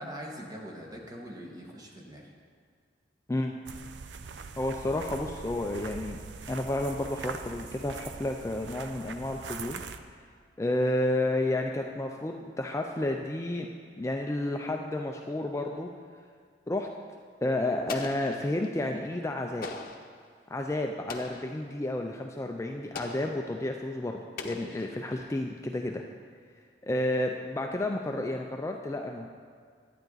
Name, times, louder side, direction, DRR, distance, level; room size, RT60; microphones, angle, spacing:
voice 1, 0.0-2.3, equal, 20° right, -1 dB, 1.4 m, -42 dB
sound 1, 3.7-10.0, right 5 dB, 90° right, 0.5 m, -42 dB
voice 2, 4.6-6.2 6.5-9.8 10.6-13.7 14.0-15.9 16.7-16.9 17.4-19.7 20.5-26.0 26.8-29.3, left 1 dB, 15° left, 2 dB, 0.4 m, -31 dB
Explosion, 17.9-18.8 19.6-20.2 21.1-21.6 23.0-23.5 24.4-25.3, left 4 dB, 55° left, 0.8 m, -41 dB
11.5 x 9.1 x 4.0 m, 2.1 s
head